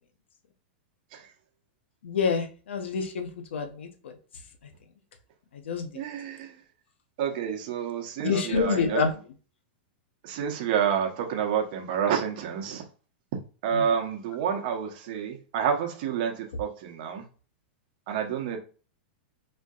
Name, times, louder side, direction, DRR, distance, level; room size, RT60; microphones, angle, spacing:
voice 1, 2.0-4.1 5.6-6.0 8.2-9.1 13.7-13.8, left 5 dB, 85° left, 0.8 m, -27 dB
voice 2, 5.9-6.6 7.2-9.1 10.2-12.8 13.6-17.3 18.1-18.6, right 8 dB, 50° right, 0.9 m, -29 dB
4.3 x 2.7 x 2.4 m
supercardioid pair, 145°, 6 cm